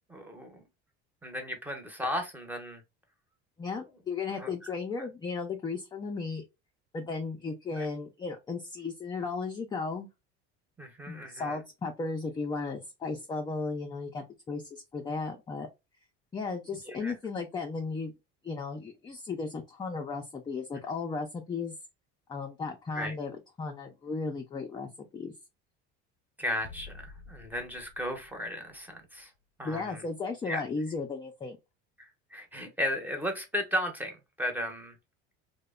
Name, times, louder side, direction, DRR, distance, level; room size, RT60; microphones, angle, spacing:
voice 1, 0.1-0.6 1.2-2.8 4.4-4.5 7.8-7.9 10.8-11.6 16.7-17.1 22.9-23.1 26.4-29.3 29.6-30.0 30.5-30.6 32.0-35.0, equal, 5° right, 0.7 m, -35 dB
voice 2, 3.6-6.4 6.9-10.1 11.1-15.7 16.3-18.1 18.4-21.7 22.3-25.3 29.6-31.6, left 4 dB, 15° left, 0.3 m, -35 dB
sound 1, 26.6-29.2, left 4 dB, 35° left, 0.7 m, -50 dB
2.8 x 2.1 x 2.2 m
supercardioid pair, 110°, 30 cm